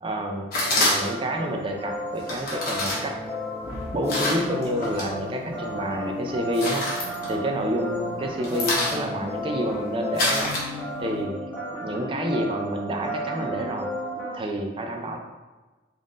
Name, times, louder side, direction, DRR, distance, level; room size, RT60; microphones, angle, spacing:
voice 1, 0.0-3.2 3.9-10.5 11.0-11.4 11.8-13.9 14.3-15.2, equal, 30° right, 2 dB, 0.3 m, -29 dB
sound 1, 0.5-1.3 2.2-5.1 5.5-6.0 6.3-7.9 8.1-11.2, left 1 dB, 50° left, 1.0 m, -28 dB
sound 2, 0.5-14.4, equal, 10° left, 0.8 m, -33 dB
3.6 x 2.5 x 3.7 m, 1.2 s
head